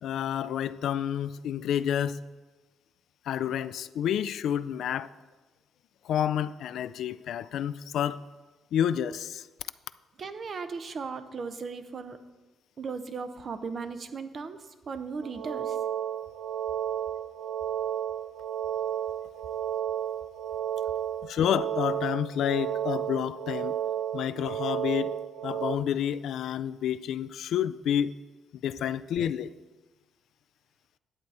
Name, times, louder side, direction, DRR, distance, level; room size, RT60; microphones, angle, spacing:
voice 1, 0.0-2.2 3.3-5.1 6.1-8.2 8.7-9.5 21.2-23.7 24.1-25.2 25.4-28.1 28.6-29.5, left 9 dB, 80° left, 0.3 m, -29 dB
voice 2, 10.2-12.2 12.8-14.6 14.9-15.8, right 5 dB, 50° right, 0.7 m, -36 dB
sound 1, 15.2-25.8, right 10 dB, 80° right, 0.5 m, -32 dB
10.5 x 7.9 x 4.2 m
cardioid pair, 90°, 0 cm